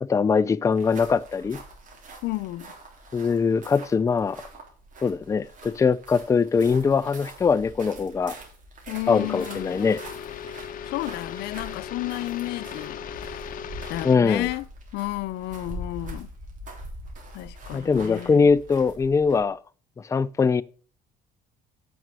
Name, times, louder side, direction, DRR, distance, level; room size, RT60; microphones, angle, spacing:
voice 1, 0.0-1.6 3.1-4.4 5.0-8.4 9.1-10.0 14.0-14.5 17.7-19.6 20.1-20.6, left 5 dB, 20° left, 0.4 m, -22 dB
sound 1, 0.7-19.5, right 1 dB, 50° right, 3.7 m, -43 dB
voice 2, 2.2-2.7 8.9-9.8 10.8-13.4 13.9-14.7 14.9-16.3 17.3-18.5, left 18 dB, 85° left, 0.6 m, -32 dB
sound 2, 9.0-14.2, left 8 dB, 55° left, 0.9 m, -37 dB
9.3 x 6.1 x 6.8 m
cardioid pair, 110°, 17 cm